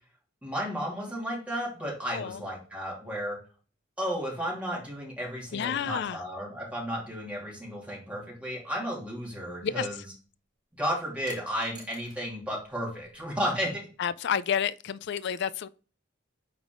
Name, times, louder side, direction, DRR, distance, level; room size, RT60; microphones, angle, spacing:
voice 1, 0.4-3.4 4.0-10.1 10.8-13.9, equal, 5° right, 2.6 m, -33 dB
voice 2, 2.1-2.4 5.5-6.2 9.6-9.9 14.0-15.7, left 8 dB, 60° left, 0.4 m, -30 dB
sound 1, 11.3-12.2 12.6-13.4, right 2 dB, 25° right, 3.6 m, -51 dB
8.8 x 3.6 x 3.7 m
head